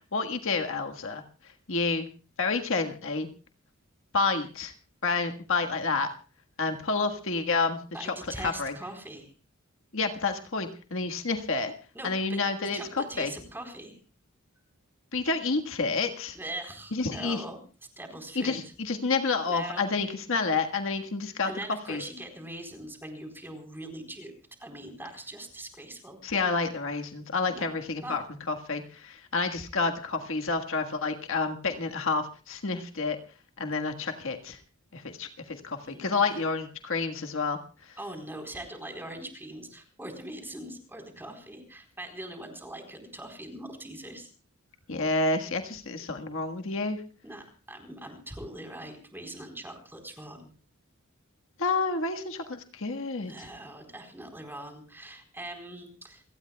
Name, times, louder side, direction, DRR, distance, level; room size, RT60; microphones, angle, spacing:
voice 1, 0.1-1.2 1.7-2.1 2.4-3.3 4.1-4.7 5.0-6.1 6.6-8.8 9.9-11.7 12.0-13.3 15.1-16.4 16.9-17.4 18.3-21.5 21.9-22.0 26.2-33.2 33.6-34.6 34.9-37.6 37.9-38.0 44.9-47.0 51.6-53.5, left 4 dB, 65° left, 4 dB, 1.6 m, -29 dB
voice 2, 7.9-9.3 11.9-12.4 12.7-14.0 16.3-17.6 18.0-18.7 19.5-19.9 21.4-24.3 24.6-26.2 27.5-27.6 28.0-28.2 35.9-36.5 38.0-44.3 47.2-50.5 53.2-56.2, right 1 dB, 10° right, 4 dB, 4.0 m, -41 dB
28.5 x 18.0 x 2.3 m, 0.36 s
head